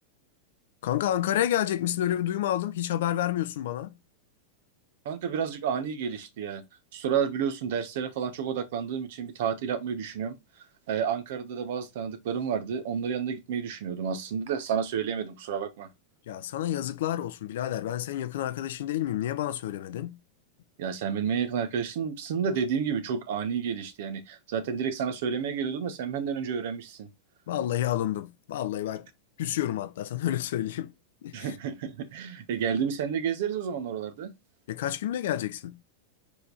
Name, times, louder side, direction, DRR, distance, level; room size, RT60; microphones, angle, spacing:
voice 1, 0.8-3.9 16.3-20.2 27.5-29.1 29.4-30.9 31.2-31.6 34.7-35.8, left 12 dB, 55° left, 0.6 m, -29 dB
voice 2, 5.0-6.6 6.9-10.4 10.9-15.9 20.8-27.1 31.3-34.3, right 7 dB, 55° right, 1.3 m, -30 dB
5.2 x 4.5 x 4.1 m
figure-of-eight pair, 90°, 0 cm